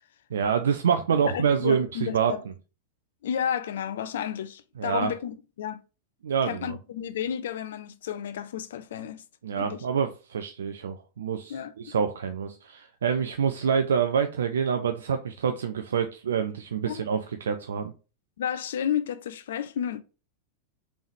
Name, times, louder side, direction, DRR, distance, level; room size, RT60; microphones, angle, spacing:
voice 1, 0.3-2.3 4.8-5.1 6.2-6.8 9.4-17.9, right 7 dB, 65° right, 0.3 m, -26 dB
voice 2, 1.2-2.4 3.2-5.8 6.5-9.2 9.6-9.8 11.5-11.9 16.9-17.0 18.4-20.0, left 9 dB, 60° left, 0.4 m, -32 dB
3.5 x 3.0 x 3.3 m
figure-of-eight pair, 90°, 0 cm